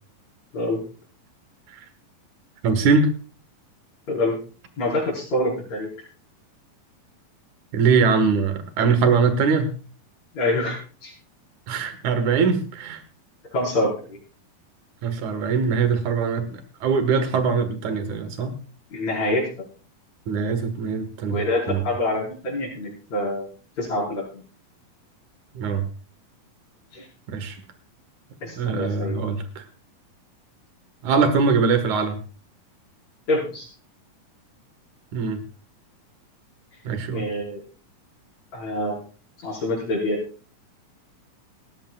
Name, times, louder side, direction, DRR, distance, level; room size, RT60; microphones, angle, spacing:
voice 1, 2.6-3.1 7.7-9.7 11.7-13.0 15.0-18.6 20.3-21.4 21.7-21.8 25.5-25.9 27.3-27.6 28.4-29.6 31.0-32.2 35.1-35.4 36.8-37.3, right 5 dB, 60° right, 9 dB, 2.8 m, -22 dB
voice 2, 4.8-5.9 10.3-11.1 13.5-14.2 18.9-19.5 21.2-23.5 23.8-24.4 26.9-27.0 28.4-29.2 33.3-33.7 37.1-37.6 38.5-39.0 39.4-40.2, left 1 dB, 50° left, -8 dB, 6.2 m, -26 dB
19.0 x 16.0 x 2.4 m, 0.37 s
omnidirectional pair, 4.1 m